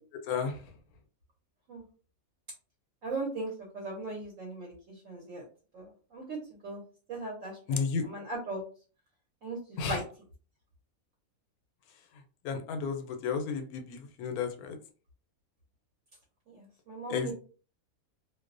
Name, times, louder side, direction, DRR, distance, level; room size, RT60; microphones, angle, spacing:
voice 1, 0.2-0.6 7.7-8.0 9.8-10.0 12.4-14.8 17.1-17.3, left 5 dB, 85° left, 5 dB, 1.1 m, -32 dB
voice 2, 3.0-4.7 5.0-5.4 5.7-6.4 6.6-6.8 7.1-8.6 9.4-9.6 9.9-10.0 16.5-17.3, right 2 dB, 65° right, -2 dB, 1.1 m, -38 dB
2.6 x 2.0 x 2.5 m, 0.38 s
omnidirectional pair, 1.5 m